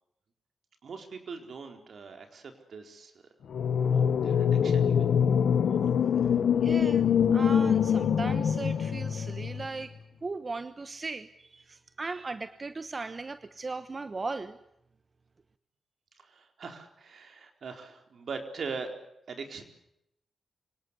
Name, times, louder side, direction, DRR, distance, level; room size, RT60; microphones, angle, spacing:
voice 1, 0.8-3.1 3.9-5.1 16.2-19.0 19.3-19.6, right 4 dB, 70° right, 5 dB, 4.2 m, -41 dB
sound 1, 3.5-9.7, left 8 dB, 80° left, 1.1 m, -24 dB
voice 2, 6.6-7.1 7.3-9.9 10.2-14.6, right 3 dB, 40° right, 12 dB, 1.1 m, -37 dB
25.0 x 18.0 x 9.9 m, 0.81 s
cardioid pair, 65°, 0 cm